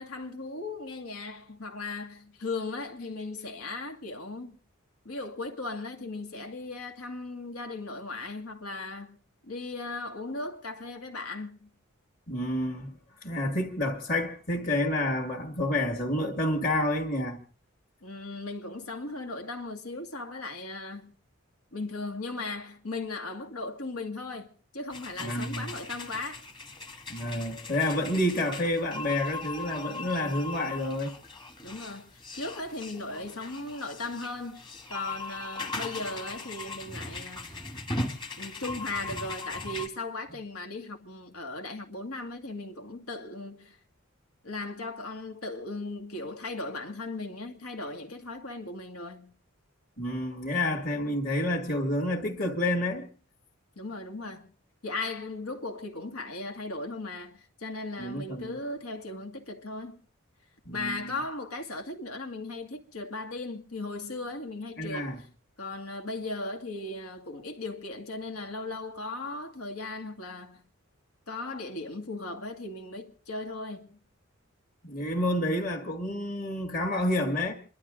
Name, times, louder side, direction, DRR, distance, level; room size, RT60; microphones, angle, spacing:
voice 1, 0.0-4.6 5.0-9.2 9.4-11.7 18.0-21.1 21.7-24.5 24.7-26.4 31.6-34.6 34.9-37.6 38.4-43.8 44.4-49.3 53.8-54.5 54.8-60.0 60.7-65.1 65.6-70.6 71.3-74.0, left 2 dB, 90° left, 2.3 m, -37 dB
voice 2, 12.3-17.4 25.2-25.7 27.1-31.1 50.0-53.1 58.0-58.6 60.7-61.1 64.8-65.2 74.8-77.5, left 1 dB, 40° left, 2.1 m, -29 dB
sound 1, 24.9-39.9, left 3 dB, 20° left, 1.4 m, -39 dB
28.0 x 12.0 x 3.8 m
head